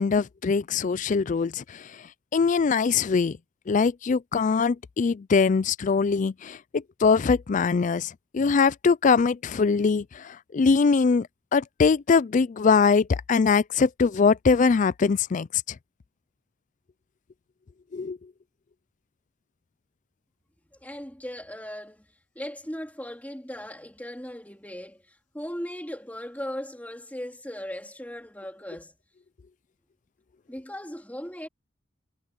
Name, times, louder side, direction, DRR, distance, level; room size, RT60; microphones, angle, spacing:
voice 1, 0.0-1.8 2.3-3.4 3.7-15.5 17.9-18.2, left 5 dB, 40° left, 0.4 m, -22 dB
voice 2, 20.7-22.1 22.4-29.0 30.5-31.5, equal, 10° left, 3.5 m, -38 dB
head